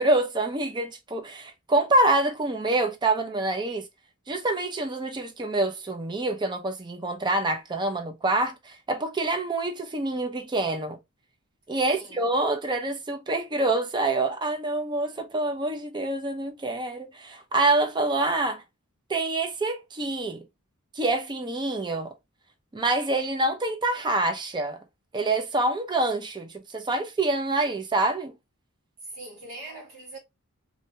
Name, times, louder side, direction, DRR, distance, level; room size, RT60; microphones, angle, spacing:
voice 1, 0.0-3.9 4.3-11.0 11.7-18.6 19.1-20.4 20.9-22.1 22.7-24.8 25.1-28.4, right 2 dB, 20° right, 0.5 m, -26 dB
voice 2, 11.9-12.3 29.0-30.2, right 2 dB, 65° right, 1.1 m, -42 dB
2.6 x 2.2 x 2.8 m
head